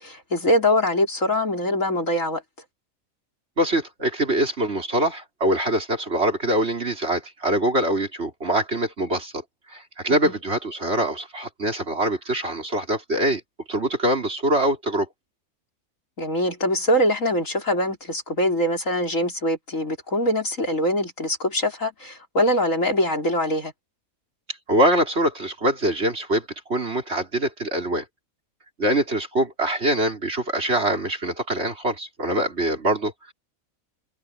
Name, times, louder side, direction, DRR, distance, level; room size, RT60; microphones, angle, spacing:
voice 1, 0.0-2.4 10.2-10.3 16.2-23.7, left 1 dB, 65° left, 5.0 m, -23 dB
voice 2, 3.6-9.3 9.7-13.4 13.7-15.1 24.7-28.0 28.8-33.3, right 1 dB, 45° right, 4.2 m, -24 dB
omnidirectional pair, 1.5 m